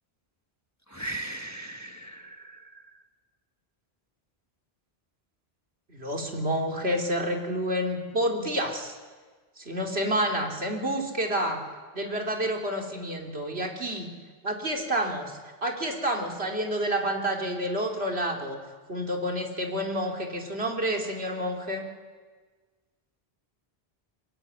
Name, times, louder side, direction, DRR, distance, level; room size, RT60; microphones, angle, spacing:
voice 1, 0.9-2.8, right 2 dB, 15° left, 6 dB, 1.4 m, -38 dB
voice 2, 5.9-8.9 9.6-11.6 11.9-14.1 14.4-18.6 18.9-21.9, equal, 80° right, 2 dB, 3.9 m, -29 dB
23.5 x 21.5 x 9.8 m, 1.4 s
omnidirectional pair, 1.1 m